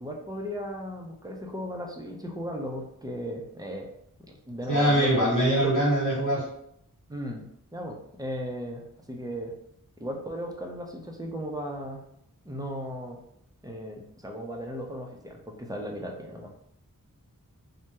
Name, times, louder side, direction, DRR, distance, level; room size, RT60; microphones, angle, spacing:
voice 1, 0.0-3.9 4.3-5.2 5.6-5.8 7.1-9.5 10.0-12.0 12.5-13.2 13.6-16.7, equal, 10° right, 1 dB, 0.5 m, -36 dB
voice 2, 4.7-6.4, right 1 dB, 60° left, -5 dB, 1.3 m, -23 dB
2.7 x 2.1 x 3.4 m, 0.74 s
wide cardioid pair, 75°, 34 cm